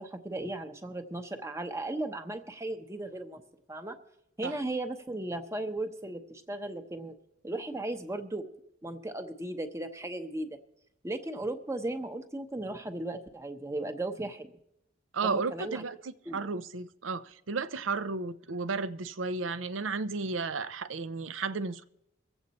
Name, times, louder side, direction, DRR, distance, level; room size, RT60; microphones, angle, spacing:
voice 1, 0.0-3.4 3.7-4.0 4.4-7.1 7.4-8.5 8.8-10.6 11.0-14.5 15.2-15.8 16.3-16.5, right 2 dB, 15° right, 0.9 m, -36 dB
voice 2, 15.1-21.8, right 4 dB, 80° right, 0.6 m, -33 dB
23.0 x 8.0 x 4.1 m
head